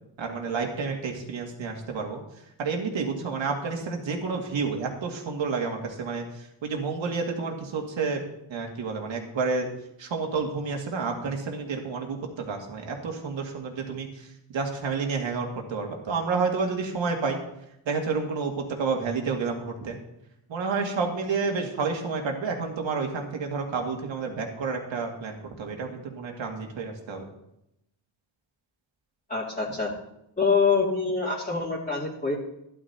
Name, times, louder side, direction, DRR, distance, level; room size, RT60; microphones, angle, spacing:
voice 1, 0.2-2.2 2.6-8.2 8.5-9.7 10.0-14.3 14.5-17.4 17.9-20.0 20.5-27.3, right 4 dB, 65° right, 2 dB, 2.3 m, -30 dB
voice 2, 29.3-29.9 30.4-32.4, left 4 dB, 15° left, -7 dB, 2.7 m, -25 dB
13.0 x 11.0 x 2.9 m, 0.82 s
cardioid pair, 80°, 49 cm